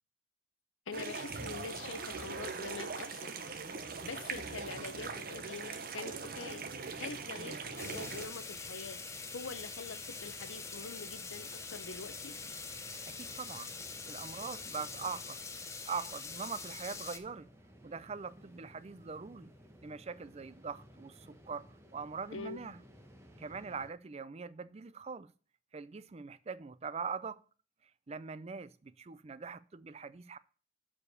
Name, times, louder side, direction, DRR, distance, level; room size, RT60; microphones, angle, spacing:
voice 1, 0.9-3.3 3.8-6.7 7.0-9.0 9.3-12.4 22.3-22.7, left 4 dB, 80° left, 0.8 m, -45 dB
sound 1, 0.9-8.3, right 4 dB, 45° right, 0.9 m, -41 dB
sound 2, 6.1-23.9, equal, 15° right, 1.0 m, -58 dB
sound 3, 7.8-17.2, left 4 dB, 15° left, 0.7 m, -44 dB
voice 2, 13.1-13.7 14.0-15.4 15.9-17.5 17.8-19.5 19.8-21.7 21.9-22.8 23.4-25.3 25.7-27.4 28.1-30.4, right 5 dB, 30° right, 0.4 m, -42 dB
7.3 x 4.9 x 6.5 m
head